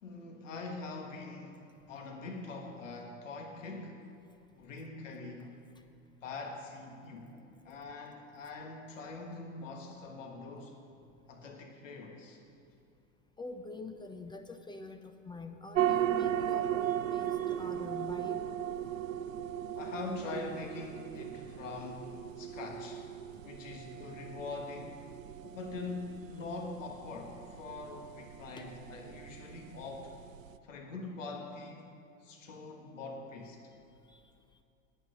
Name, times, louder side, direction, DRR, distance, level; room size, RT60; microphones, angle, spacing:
voice 1, 0.0-4.1 4.6-5.6 6.2-7.4 7.7-10.8 11.3-12.4 19.8-23.0 23.4-25.1 25.4-30.1 30.6-31.9 32.2-33.6, left 3 dB, 70° left, 3 dB, 1.7 m, -43 dB
voice 2, 13.4-18.5 28.6-28.7 34.1-34.2, left 3 dB, 10° left, 8 dB, 0.6 m, -45 dB
sound 1, 15.7-30.6, right 11 dB, 80° right, 0.5 m, -37 dB
19.0 x 8.1 x 5.3 m, 2.6 s
figure-of-eight pair, 80°, 39 cm